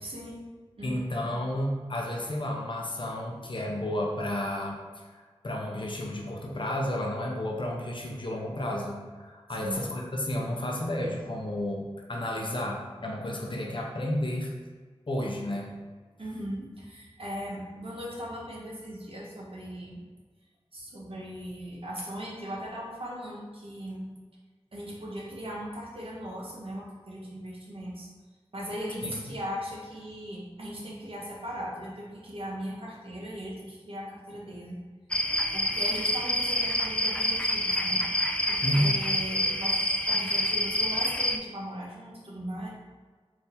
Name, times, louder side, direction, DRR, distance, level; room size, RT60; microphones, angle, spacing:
voice 1, 0.0-0.4 0.8-1.1 9.5-9.8 16.2-20.0 20.7-24.0 24.7-28.1 28.5-34.8 35.5-38.0 38.5-42.7, equal, 60° right, -4 dB, 1.1 m, -38 dB
voice 2, 0.8-4.8 5.4-14.5 15.1-15.7 29.0-29.1 38.6-38.9, left 1 dB, 50° left, -1 dB, 0.7 m, -31 dB
sound 1, 35.1-41.4, left 1 dB, 10° left, 0.3 m, -27 dB
4.4 x 2.7 x 3.4 m, 1.5 s
wide cardioid pair, 65°, 11 cm